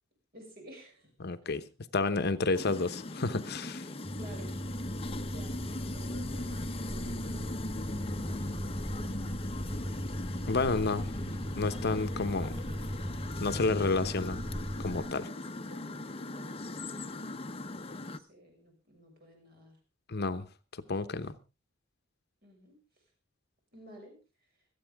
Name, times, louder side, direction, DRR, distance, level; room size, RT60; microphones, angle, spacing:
voice 1, 0.3-1.1 4.1-4.5 5.2-10.6 11.1-11.3 11.8-12.2 15.3-19.8 22.4-22.8 23.7-24.2, right 1 dB, 50° right, 2 dB, 6.5 m, -54 dB
voice 2, 1.2-1.6 1.9-3.9 10.5-12.6 13.4-14.4 14.8-15.3 20.1-20.5 20.7-21.4, left 3 dB, 55° left, 11 dB, 0.9 m, -30 dB
sound 1, 2.5-18.2, left 2 dB, 30° left, 0.8 m, -40 dB
sound 2, 4.0-15.0, equal, 15° right, 5.0 m, -38 dB
25.5 x 8.8 x 3.5 m, 0.29 s
head